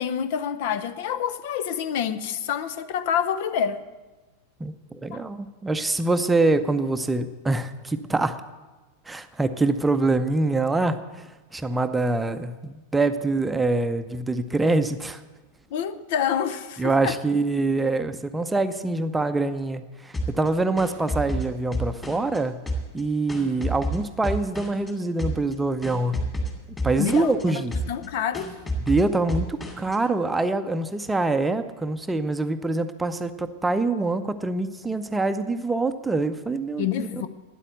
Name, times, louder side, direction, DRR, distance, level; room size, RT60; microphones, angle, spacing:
voice 1, 0.0-3.8 5.1-5.2 15.7-17.2 27.0-28.5 36.8-37.3, left 8 dB, 50° left, 0.7 m, -27 dB
voice 2, 4.6-8.4 9.1-15.2 16.8-22.6 22.9-26.2 26.8-27.7 28.9-37.1, right 3 dB, 10° right, 0.7 m, -25 dB
sound 1, 20.1-22.4 22.7-24.9 25.2-25.5 25.8-27.4 27.7-28.1 28.3-30.0, right 1 dB, 15° left, 2.5 m, -30 dB
12.5 x 10.0 x 7.9 m
figure-of-eight pair, 90°, 0 cm